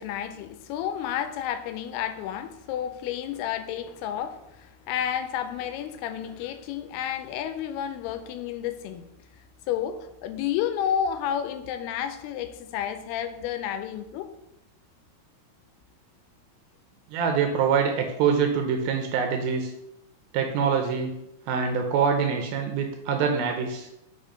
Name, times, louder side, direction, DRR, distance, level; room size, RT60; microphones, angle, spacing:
voice 1, 0.0-9.1 9.7-14.3, left 9 dB, 90° left, 9 dB, 2.6 m, -31 dB
voice 2, 17.1-19.7 20.3-21.1 21.5-23.9, right 6 dB, 80° right, 4 dB, 2.4 m, -25 dB
5.8 x 4.3 x 5.0 m, 0.85 s
omnidirectional pair, 4.5 m